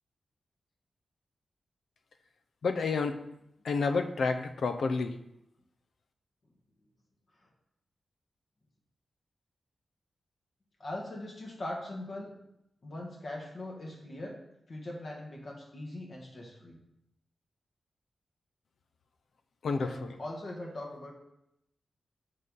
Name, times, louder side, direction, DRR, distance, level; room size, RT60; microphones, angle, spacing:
voice 1, 2.6-3.1 3.6-5.1 19.6-20.1, left 4 dB, 80° left, 7 dB, 0.7 m, -29 dB
voice 2, 10.8-12.4 12.8-14.4 14.7-16.8 19.8-21.1, left 1 dB, 60° left, -1 dB, 1.7 m, -41 dB
7.8 x 4.1 x 5.4 m, 0.81 s
cardioid pair, 50°, 0 cm